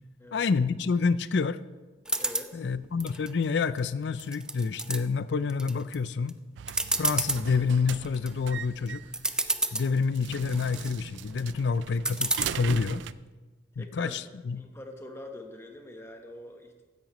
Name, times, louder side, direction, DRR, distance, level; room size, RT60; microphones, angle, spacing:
voice 1, 0.3-1.6 2.5-6.3 7.0-9.0 9.7-13.0 13.8-14.6, left 5 dB, 70° left, 16 dB, 0.4 m, -28 dB
sound 1, 2.0-2.5 3.0-3.8 4.2-5.0 5.5-5.9 6.3-6.4 6.7-7.4 7.9-8.3 8.9-9.0 9.1-9.9 10.4-10.9 12.0-12.5, right 2 dB, 5° right, 0.3 m, -29 dB
voice 2, 2.2-2.7 13.8-14.1 14.6-16.8, left 1 dB, 15° left, 3 dB, 1.1 m, -44 dB
sound 2, 6.6-13.1, right 8 dB, 80° right, 0.4 m, -40 dB
15.0 x 10.5 x 3.1 m, 1.2 s
head